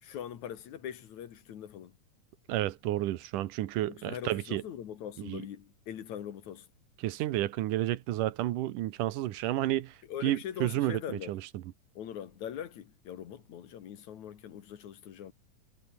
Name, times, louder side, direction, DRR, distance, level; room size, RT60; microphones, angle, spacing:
voice 1, 0.0-2.0 3.9-6.7 10.1-11.3 12.0-15.3, left 9 dB, 65° left, 2.9 m, -42 dB
voice 2, 2.5-4.6 5.3-5.4 7.0-9.9 10.2-11.0 11.3-11.4, right 14 dB, 85° right, 2.5 m, -31 dB
omnidirectional pair, 3.7 m